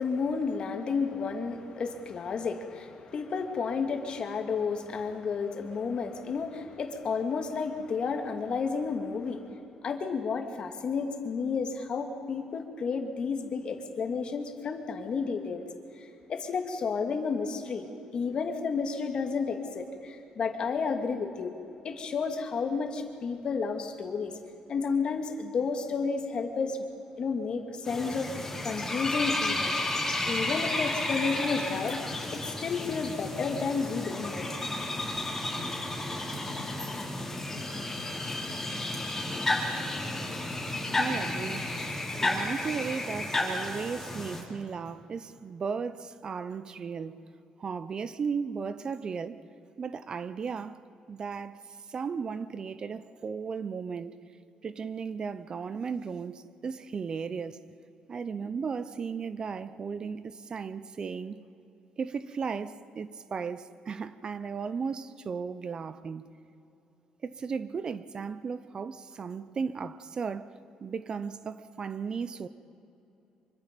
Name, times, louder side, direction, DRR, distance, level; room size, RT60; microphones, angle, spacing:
voice 1, 0.0-9.5 9.8-15.6 16.0-17.9 18.1-21.5 21.8-24.3 24.7-26.8 27.2-28.3 28.6-29.7 30.2-32.1 32.3-34.5, left 5 dB, 45° left, 2.2 m, -31 dB
sound 1, 27.8-44.4, left 2 dB, 15° left, 4.6 m, -32 dB
voice 2, 41.0-41.7 42.2-47.2 47.6-49.4 49.8-51.6 51.9-54.2 54.6-57.6 58.1-61.4 62.0-66.2 67.2-70.5 70.8-72.5, right 5 dB, 40° right, 0.7 m, -35 dB
25.0 x 24.5 x 5.3 m
cardioid pair, 115°, 2 cm